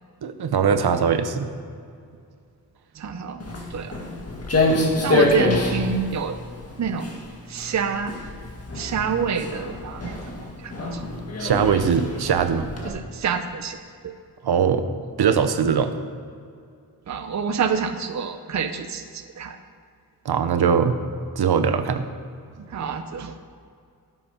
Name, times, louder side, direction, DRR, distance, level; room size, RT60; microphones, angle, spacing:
voice 1, 0.2-1.5 11.4-12.7 14.4-14.9 15.2-15.9 20.2-21.0 21.4-22.0, right 7 dB, 80° right, 9 dB, 0.9 m, -21 dB
voice 2, 2.9-3.4 3.7-4.0 5.0-6.4 6.8-7.1 7.5-8.2 8.7-11.0 12.8-13.8 14.0-14.1 17.1-19.6 22.6-23.4, right 6 dB, 45° right, 8 dB, 0.7 m, -27 dB
Walk footsteps, 3.4-12.9, left 2 dB, 40° left, 1.7 m, -26 dB
13.0 x 8.2 x 5.6 m, 2.3 s
wide cardioid pair, 175°, 38 cm